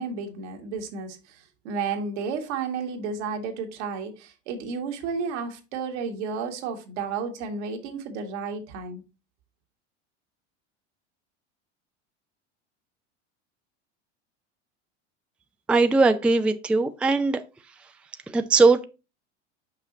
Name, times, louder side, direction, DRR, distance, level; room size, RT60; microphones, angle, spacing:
voice 1, 0.0-9.0, right 5 dB, 70° right, 1.8 m, -32 dB
voice 2, 15.7-17.4 18.3-18.8, right 3 dB, 5° right, 0.4 m, -20 dB
5.8 x 5.6 x 4.1 m
hypercardioid pair, 95°, 36 cm